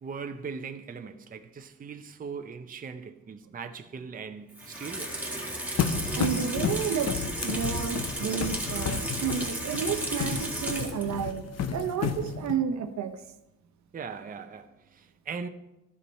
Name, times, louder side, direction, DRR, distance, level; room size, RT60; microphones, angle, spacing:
voice 1, 0.0-5.3 13.9-15.5, right 5 dB, 30° right, 0.6 m, -40 dB
Water tap faucet / Sink (filling or washing), 4.5-11.2 11.6-11.7, right 1 dB, 5° right, 2.0 m, -34 dB
sound 1, 5.8-12.6, left 7 dB, 60° left, 0.8 m, -32 dB
voice 2, 6.2-7.1 7.4-13.1, right 8 dB, 65° right, 0.8 m, -31 dB
12.5 x 5.3 x 4.3 m
cardioid pair, 90°, 30 cm